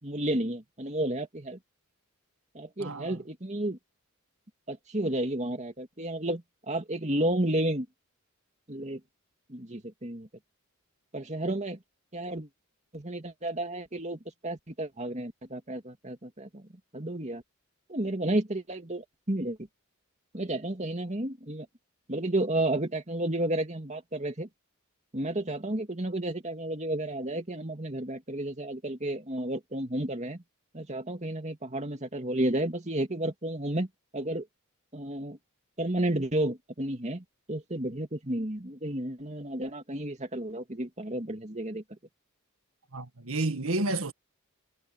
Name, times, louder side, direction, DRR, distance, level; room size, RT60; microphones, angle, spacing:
voice 1, 0.0-1.6 2.5-3.8 4.7-7.9 8.7-9.0 9.5-10.3 11.1-11.8 12.1-12.5 12.9-16.6 16.9-17.4 17.9-19.6 20.3-21.7 22.1-24.5 25.1-30.4 30.7-33.9 34.1-34.5 34.9-35.4 35.8-41.8, right 1 dB, 30° right, 2.5 m, -32 dB
voice 2, 2.8-3.2 42.9-44.1, right 2 dB, 70° right, 1.8 m, -30 dB
head